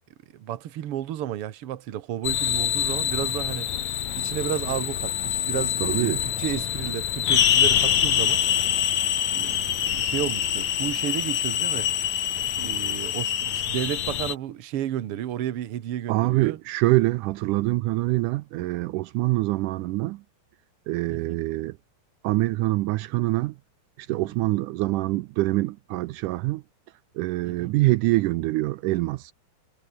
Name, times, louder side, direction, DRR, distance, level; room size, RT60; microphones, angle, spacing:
voice 1, 0.3-3.7 4.2-8.4 9.3-9.6 9.8-11.9 12.6-16.6 21.1-21.4 24.1-24.4 27.4-27.7, right 12 dB, 60° right, 1.5 m, -32 dB
sound 1, 2.2-14.3, left 10 dB, 60° left, 2.8 m, -25 dB
voice 2, 5.8-6.2 16.1-20.2 20.9-21.8 22.2-23.6 24.0-26.6 27.2-29.3, right 19 dB, 80° right, 1.9 m, -25 dB
omnidirectional pair, 4.0 m